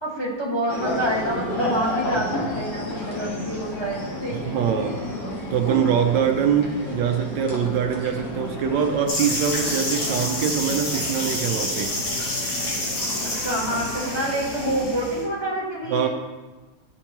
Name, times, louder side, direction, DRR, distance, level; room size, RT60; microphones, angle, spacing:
voice 1, 0.0-5.0 13.2-16.1, right 1 dB, 15° left, -6 dB, 1.4 m, -27 dB
sound 1, 0.7-14.9, left 1 dB, 50° left, 1.6 m, -32 dB
voice 2, 4.5-5.0 5.5-12.0 15.9-16.1, right 8 dB, 75° right, 5 dB, 1.3 m, -23 dB
sound 2, 9.1-15.2, left 1 dB, 85° left, 2.6 m, -28 dB
11.5 x 4.4 x 2.9 m, 1.2 s
omnidirectional pair, 2.1 m